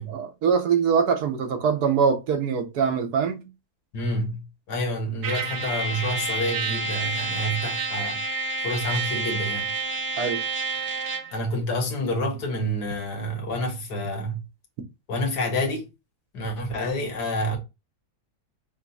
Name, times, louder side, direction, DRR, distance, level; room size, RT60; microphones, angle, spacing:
voice 1, 0.0-3.5 10.2-10.4, right 6 dB, 75° right, 1.3 m, -23 dB
voice 2, 3.9-8.2 8.6-9.7 11.3-14.4 15.1-15.9 16.3-17.6, equal, 85° left, 1.8 m, -28 dB
Trumpet, 5.2-11.4, right 3 dB, 55° right, 0.9 m, -29 dB
5.8 x 2.0 x 4.0 m
omnidirectional pair, 1.7 m